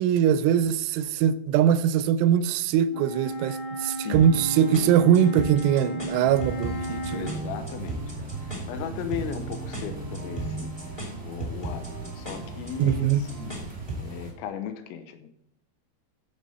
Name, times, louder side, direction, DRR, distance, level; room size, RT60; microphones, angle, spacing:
voice 1, 0.0-7.3 12.8-13.2, right 9 dB, 85° right, 3.0 m, -22 dB
Wind instrument woodwind instrument, 2.9-7.4, right 1 dB, 65° left, 2.4 m, -33 dB
sound 1, 4.1-14.1, right 1 dB, 10° left, 1.5 m, -37 dB
sound 2, 6.2-14.3, right 4 dB, 25° right, 1.2 m, -39 dB
voice 2, 7.1-10.7 11.2-13.5 14.0-15.3, left 9 dB, 85° left, 3.0 m, -37 dB
14.0 x 6.2 x 4.2 m
omnidirectional pair, 5.4 m